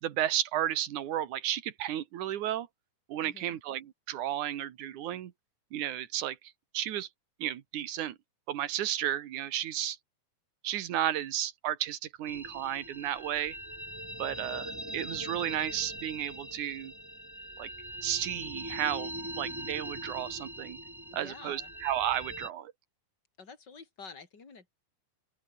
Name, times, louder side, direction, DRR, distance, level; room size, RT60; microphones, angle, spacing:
voice 1, 0.0-2.7 3.1-5.3 5.7-6.4 6.7-7.1 7.4-8.2 8.5-10.0 10.6-13.6 14.2-16.9 17.6-17.7 18.0-20.8 21.1-22.7, right 12 dB, 65° right, 2.7 m, -33 dB
voice 2, 3.2-3.6 21.1-21.7 23.4-24.7, left 5 dB, 30° left, 4.5 m, -49 dB
sound 1, 12.3-22.5, right 1 dB, 5° right, 3.1 m, -42 dB
open air
omnidirectional pair, 4.2 m